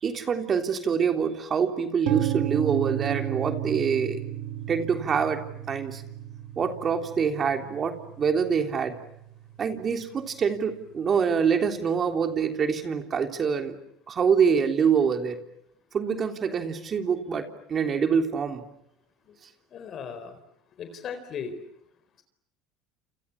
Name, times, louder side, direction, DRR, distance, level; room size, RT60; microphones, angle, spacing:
voice 1, 0.0-4.2 4.7-5.4 5.7-6.0 6.6-9.0 9.6-13.7 14.1-15.4 15.9-18.6, right 6 dB, 35° right, 5 dB, 3.4 m, -25 dB
sound 1, 2.1-9.9, right 13 dB, 70° right, 2.1 m, -33 dB
voice 2, 19.7-20.4 20.8-21.5, left 7 dB, 45° left, 9 dB, 4.4 m, -36 dB
29.0 x 29.0 x 7.2 m, 0.78 s
supercardioid pair, 105°, 0 cm